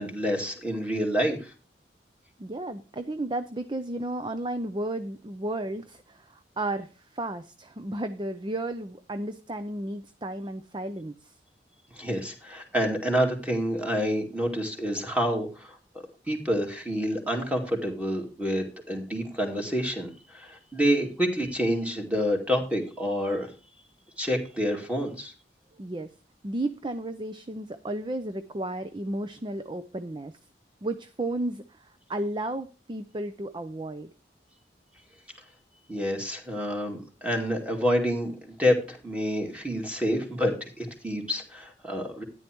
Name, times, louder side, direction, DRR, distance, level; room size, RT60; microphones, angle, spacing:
voice 1, 0.0-1.5 11.9-15.8 16.3-23.5 24.2-25.3 35.9-42.2, equal, 10° right, 2 dB, 2.5 m, -28 dB
voice 2, 2.4-11.3 25.8-26.1 26.4-30.3 30.8-34.1, right 1 dB, 25° right, 11 dB, 0.6 m, -33 dB
13.0 x 10.0 x 3.0 m, 0.34 s
head